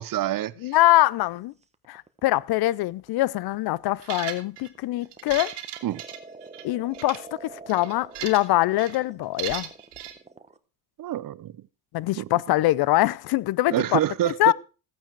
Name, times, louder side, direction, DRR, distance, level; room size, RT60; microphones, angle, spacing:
voice 1, 0.0-0.7 5.8-6.0 11.0-11.5 12.2-12.3 13.7-14.5, right 13 dB, 55° right, 0.7 m, -27 dB
voice 2, 0.6-1.5 1.9-5.5 6.6-9.7 11.9-14.0 14.3-14.5, left 16 dB, 65° left, 0.5 m, -23 dB
sound 1, 1.6-10.6, right 3 dB, 15° right, 1.0 m, -46 dB
sound 2, 4.0-4.7 5.1-6.6 6.9-7.2 7.7-8.5 8.8-9.0 9.4-10.1, right 11 dB, 80° right, 2.0 m, -36 dB
14.5 x 8.9 x 4.5 m
supercardioid pair, 80°, 41 cm